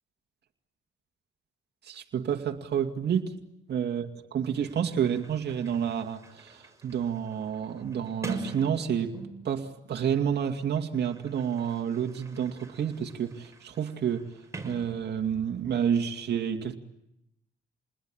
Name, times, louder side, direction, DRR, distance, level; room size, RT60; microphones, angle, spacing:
voice 1, 1.8-3.4 3.7-9.2 9.4-14.4 14.6-16.8, right 8 dB, 60° right, 2.3 m, -29 dB
Sliding door, 4.2-4.3 4.5-9.6 10.5-15.5, right 3 dB, 15° right, 6.0 m, -44 dB
28.5 x 20.5 x 8.9 m
cardioid pair, 90°, 20 cm